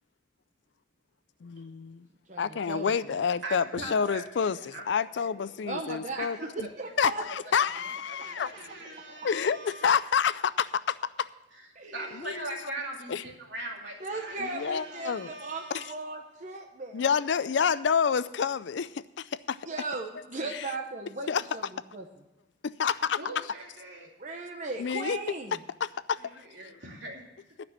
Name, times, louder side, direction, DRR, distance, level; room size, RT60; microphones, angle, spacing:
voice 1, 1.4-1.9 2.4-6.7 7.0-8.5 9.2-11.3 12.2-12.4 13.1-13.2 14.4-15.3 15.7-15.8 16.9-18.9 19.2-19.6 20.5-20.7 21.3-21.4 22.8-23.2 24.8-25.2 25.8-26.2, left 6 dB, 65° left, 16 dB, 0.4 m, -28 dB
voice 2, 2.3-2.9 5.7-6.3 6.8-7.2 11.8-12.2 14.0-17.1 19.7-22.1 24.2-25.6, right 3 dB, 40° right, 3 dB, 0.8 m, -37 dB
voice 3, 3.2-5.6 6.1-7.2 7.8-10.0 11.5-11.7 11.9-15.9 23.2-24.1 26.2-27.3, right 2 dB, 70° right, 0 dB, 2.6 m, -41 dB
10.5 x 6.0 x 8.6 m, 0.98 s
head